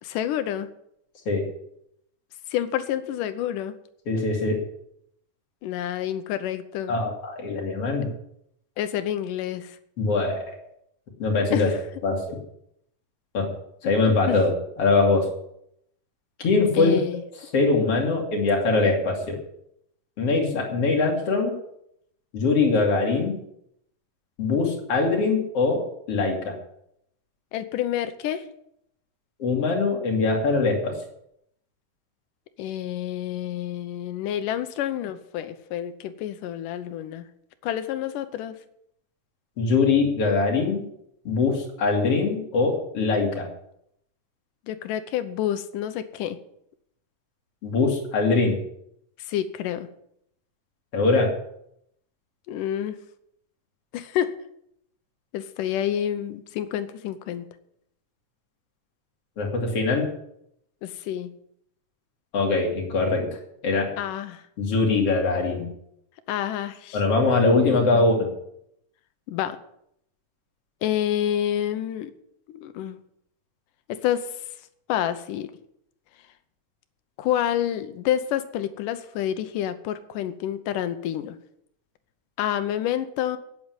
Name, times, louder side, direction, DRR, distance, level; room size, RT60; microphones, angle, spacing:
voice 1, 0.0-0.7 2.5-3.7 5.6-7.0 8.8-9.8 11.5-11.8 13.8-14.0 14.3-14.4 16.8-17.2 27.5-28.4 32.6-37.3 37.6-38.5 44.7-46.4 49.2-49.9 52.5-53.0 53.9-54.3 55.3-57.5 60.8-61.3 64.0-64.4 66.3-67.0 67.4-68.0 69.3-69.6 70.8-72.1 72.5-73.0 74.0-74.3 74.9-75.5 77.2-81.4 82.4-83.4, left 11 dB, 85° left, 11 dB, 2.5 m, -28 dB
voice 2, 4.1-4.6 6.9-8.1 10.0-10.6 11.2-11.7 12.0-12.4 13.3-13.5 13.8-14.5 14.8-15.3 16.4-17.0 17.5-19.4 20.2-21.5 22.3-23.4 24.4-26.6 29.4-31.0 39.6-40.9 41.2-43.5 47.6-48.6 50.9-51.3 59.4-60.1 62.3-63.9 64.6-65.7 66.9-68.3, left 3 dB, 50° left, 0 dB, 3.5 m, -22 dB
9.5 x 8.5 x 9.1 m, 0.74 s
omnidirectional pair, 3.7 m